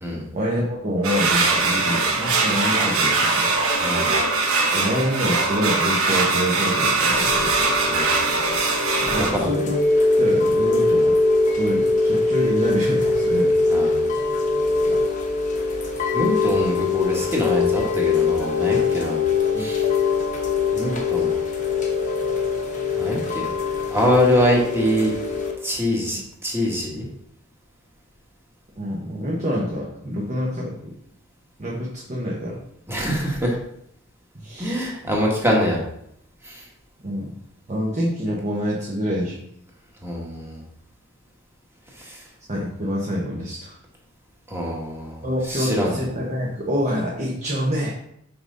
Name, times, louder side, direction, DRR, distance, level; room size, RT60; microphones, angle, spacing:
voice 1, 0.3-3.5 4.7-7.5 9.0-9.8 10.2-11.1 11.5-13.5 14.9-15.0 19.5-19.7 28.8-30.9 31.6-32.6 34.3-34.7 37.0-37.4 37.7-39.4 42.5-43.7 45.2-47.9, equal, 35° right, -3 dB, 1.1 m, -26 dB
sound 1, 1.0-9.3, right 3 dB, 65° right, 1.0 m, -21 dB
voice 2, 3.8-4.1 7.9-8.1 9.2-9.5 13.7-14.1 16.1-19.2 19.6-19.9 20.7-21.3 22.9-23.5 23.9-25.1 25.6-27.1 32.9-33.6 34.6-35.8 36.4-36.6 40.0-40.6 42.0-42.2 44.5-46.0, equal, 10° right, -2 dB, 1.6 m, -24 dB
Chime / Rain, 7.1-25.5, left 3 dB, 35° left, 1.0 m, -22 dB
5.9 x 5.3 x 3.9 m, 0.74 s
head